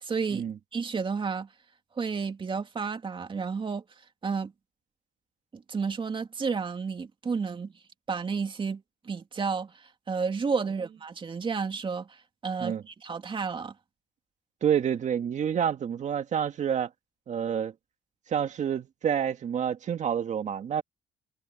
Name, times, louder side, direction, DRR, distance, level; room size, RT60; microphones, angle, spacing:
voice 1, 0.0-1.5 1.9-3.8 4.2-4.5 5.5-7.7 8.1-12.2 12.4-13.7, right 5 dB, 30° right, 2.6 m, -31 dB
voice 2, 14.6-16.9 17.3-17.7 18.3-20.8, right 8 dB, 45° right, 1.8 m, -28 dB
cardioid pair, 110°, 17 cm